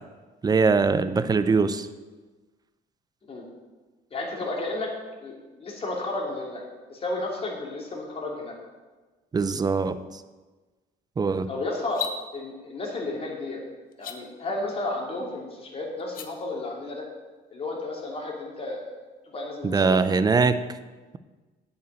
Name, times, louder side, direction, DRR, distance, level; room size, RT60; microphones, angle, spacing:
voice 1, 0.4-1.9 9.3-10.0 11.2-11.5 19.6-20.6, right 4 dB, 25° right, 13 dB, 0.6 m, -22 dB
voice 2, 4.1-4.9 5.2-6.6 6.9-8.6 11.5-12.0 12.3-13.6 14.0-17.0 17.5-18.8 19.3-20.0, left 2 dB, 35° left, -1 dB, 2.7 m, -32 dB
sound 1, 11.8-12.2 13.9-14.2 16.0-16.3, left 7 dB, 55° left, 1.0 m, -33 dB
8.9 x 5.7 x 7.7 m, 1.3 s
cardioid pair, 110°, 17 cm